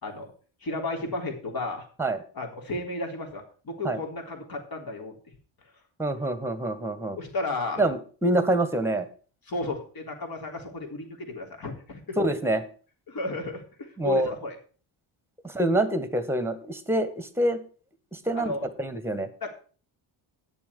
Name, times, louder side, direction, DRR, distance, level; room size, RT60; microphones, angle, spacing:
voice 1, 0.0-0.3 0.6-1.9 2.4-5.2 7.1-7.8 9.5-12.2 13.1-14.6 18.3-18.7 19.4-19.5, left 2 dB, 45° left, 3 dB, 3.7 m, -33 dB
voice 2, 6.0-7.2 7.8-9.1 12.2-12.6 14.0-14.3 15.4-17.6 18.1-18.5 18.8-19.3, right 1 dB, 5° right, 10 dB, 1.6 m, -26 dB
10.5 x 7.0 x 6.9 m, 0.40 s
cardioid pair, 110°, 50 cm